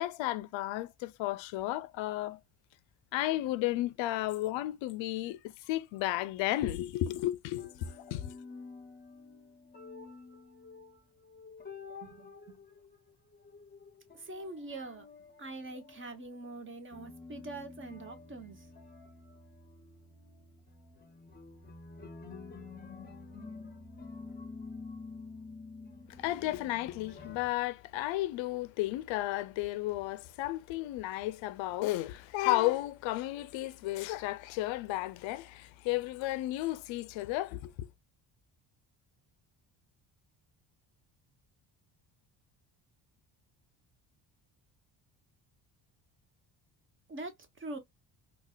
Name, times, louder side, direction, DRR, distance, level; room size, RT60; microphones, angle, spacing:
voice 1, 0.0-2.4 3.1-8.4 26.2-37.9, left 16 dB, 80° left, 0.5 m, -33 dB
sound 1, 7.6-11.0 11.2-16.2 16.5-16.6 16.9-27.5, left 4 dB, 20° left, 0.7 m, -49 dB
voice 2, 12.0-12.6 14.1-15.0 15.4-18.7 47.1-47.8, right 2 dB, 25° right, 0.9 m, -44 dB
3.9 x 2.4 x 2.3 m
cardioid pair, 115°, 45 cm